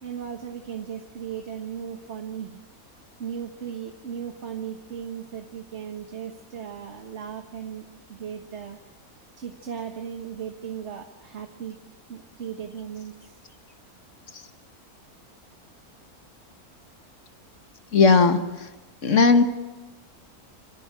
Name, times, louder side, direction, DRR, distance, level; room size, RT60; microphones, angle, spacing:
voice 1, 0.0-2.6 3.2-8.8 9.4-11.8 12.1-13.4, right 8 dB, 50° right, 4 dB, 1.5 m, -36 dB
voice 2, 17.9-18.7 19.0-19.4, left 4 dB, 55° left, 8 dB, 1.6 m, -18 dB
27.5 x 15.5 x 8.2 m, 1.2 s
omnidirectional pair, 1.6 m